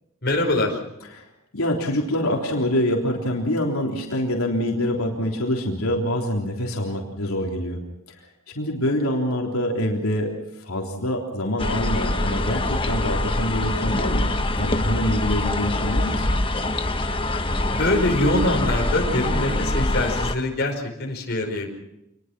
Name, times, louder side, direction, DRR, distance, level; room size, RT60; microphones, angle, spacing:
voice 1, 0.2-0.8 17.7-21.8, left 1 dB, 50° left, 1 dB, 5.1 m, -23 dB
voice 2, 1.5-7.8 8.1-8.2 8.6-10.3 10.6-16.3, left 1 dB, 80° left, -1 dB, 3.6 m, -25 dB
sound 1, 11.6-20.3, left 1 dB, 25° left, 1.2 m, -24 dB
27.0 x 21.0 x 6.2 m, 0.85 s
head